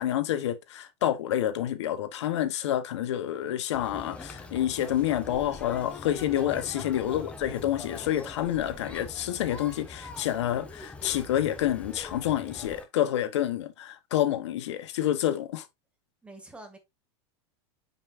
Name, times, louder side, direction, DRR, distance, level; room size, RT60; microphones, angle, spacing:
voice 1, 0.0-15.7, left 12 dB, 85° left, 1.1 m, -28 dB
Conversation, 3.7-12.8, left 3 dB, 10° left, 1.4 m, -43 dB
voice 2, 7.0-7.4 16.2-16.8, right 1 dB, 10° right, 2.2 m, -48 dB
9.5 x 5.5 x 2.6 m
supercardioid pair, 140°, 14 cm